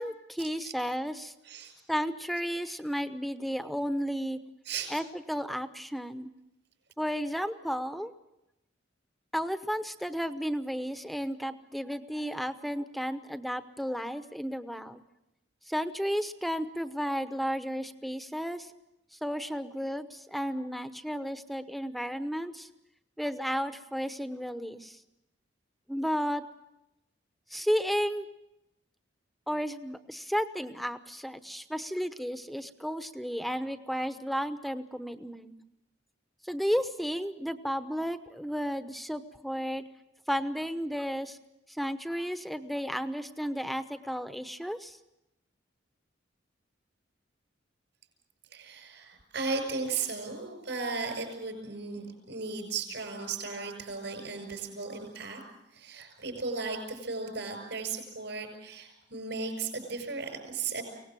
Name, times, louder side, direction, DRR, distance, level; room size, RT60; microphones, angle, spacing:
voice 1, 0.0-1.3 1.9-4.4 4.9-6.3 7.0-8.1 9.3-15.0 15.7-18.7 19.1-22.7 23.2-25.0 25.9-26.4 27.5-28.3 29.5-35.5 36.4-39.8 40.3-41.4 41.7-45.0, equal, ahead, 10 dB, 0.9 m, -33 dB
voice 2, 48.5-55.4 55.7-60.8, right 4 dB, 70° right, 4 dB, 6.7 m, -36 dB
24.0 x 18.5 x 7.6 m, 0.89 s
head